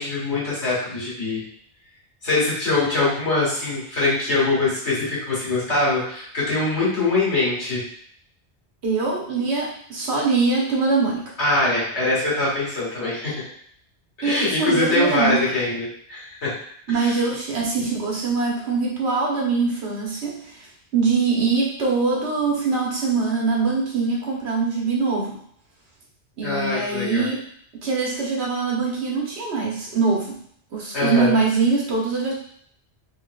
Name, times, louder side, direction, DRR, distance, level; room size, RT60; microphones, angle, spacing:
voice 1, 0.0-1.4 2.2-7.8 11.4-13.4 14.2-16.6 16.9-17.2 26.4-27.3 30.9-31.4, left 2 dB, 80° left, -7 dB, 1.9 m, -23 dB
voice 2, 8.8-11.3 14.2-15.4 16.9-20.7 20.9-25.3 26.4-27.4 27.8-30.3 30.7-32.3, right 4 dB, 75° right, -3 dB, 1.2 m, -23 dB
3.8 x 3.0 x 2.3 m, 0.64 s
omnidirectional pair, 1.1 m